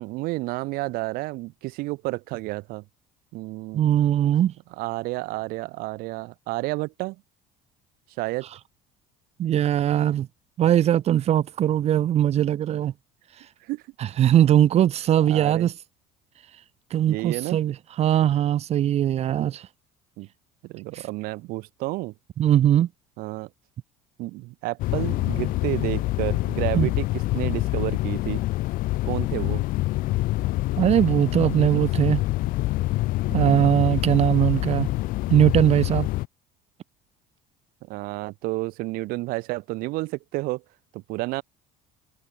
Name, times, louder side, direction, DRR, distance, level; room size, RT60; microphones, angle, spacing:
voice 1, 0.0-2.8 3.3-3.9 4.8-7.2 8.2-8.5 13.6-13.8 15.3-15.7 17.1-17.6 19.4-19.5 20.2-20.3 20.6-22.1 23.2-23.5 24.2-27.1 27.3-28.4 29.0-29.6 31.7-31.8 33.3-33.7 37.8-40.6 40.9-41.4, right 21 dB, 70° right, 1.1 m, -31 dB
voice 2, 3.7-4.5 9.4-10.3 10.6-12.9 14.2-15.7 16.9-19.6 22.4-22.9 26.7-26.9 30.7-32.2 33.3-34.9 35.3-36.1, right 11 dB, 40° right, 0.9 m, -20 dB
sound 1, 24.8-36.3, left 18 dB, 65° left, 1.0 m, -26 dB
cardioid pair, 125°, 16 cm